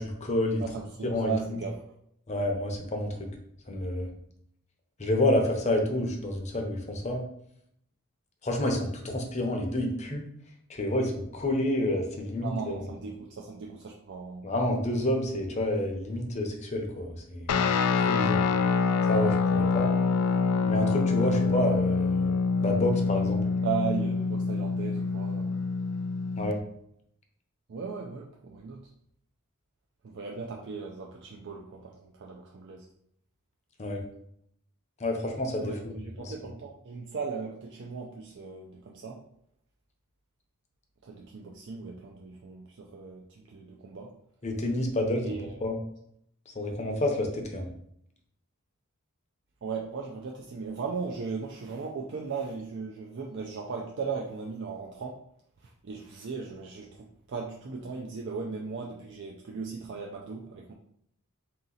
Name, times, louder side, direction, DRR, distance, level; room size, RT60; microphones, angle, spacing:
voice 1, 0.0-0.6 1.0-1.6 2.3-3.3 3.7-4.1 5.0-7.2 8.4-10.2 10.7-12.9 14.4-18.4 19.1-19.9 20.7-22.3 22.6-23.4 26.4-26.6 33.8-34.0 35.0-36.3 44.4-45.3 45.6-45.7 46.5-47.7, left 1 dB, 30° left, 3 dB, 0.7 m, -29 dB
voice 2, 0.6-1.9 12.4-14.5 23.6-25.7 27.7-28.8 30.0-32.9 35.6-39.2 41.0-44.1 45.2-45.6 49.6-55.2 55.6-60.7, right 5 dB, 55° right, -1 dB, 0.4 m, -37 dB
Guitar, 17.5-26.6, left 4 dB, 75° left, 0.4 m, -26 dB
3.8 x 2.9 x 3.9 m, 0.71 s
head